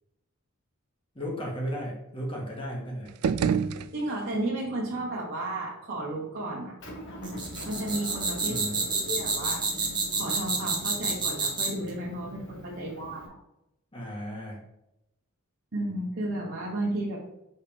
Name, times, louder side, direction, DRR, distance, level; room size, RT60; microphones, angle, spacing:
voice 1, 1.2-3.1 8.5-8.8 13.9-14.6, equal, 25° left, -2 dB, 1.8 m, -35 dB
sound 1, 3.1-4.5, right 6 dB, 80° right, 0.4 m, -28 dB
voice 2, 3.9-6.7 7.6-8.7 9.1-13.2 15.7-17.2, right 1 dB, 45° right, -6 dB, 1.3 m, -33 dB
Motor vehicle (road) / Engine, 6.8-13.3, left 1 dB, 60° left, 1.7 m, -42 dB
sound 2, 7.2-11.9, right 4 dB, 20° right, 1.4 m, -28 dB
5.5 x 4.0 x 5.1 m, 0.86 s
head